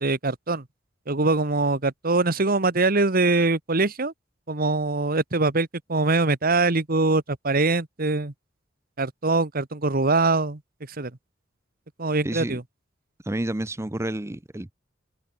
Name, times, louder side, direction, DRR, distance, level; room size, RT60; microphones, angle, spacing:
voice 1, 0.0-0.6 1.1-4.1 4.5-8.3 9.0-10.6 11.0-11.1 12.0-12.6, right 3 dB, 50° right, 1.6 m, -23 dB
voice 2, 12.2-12.6 13.2-14.7, right 1 dB, 15° right, 0.7 m, -30 dB
open air
head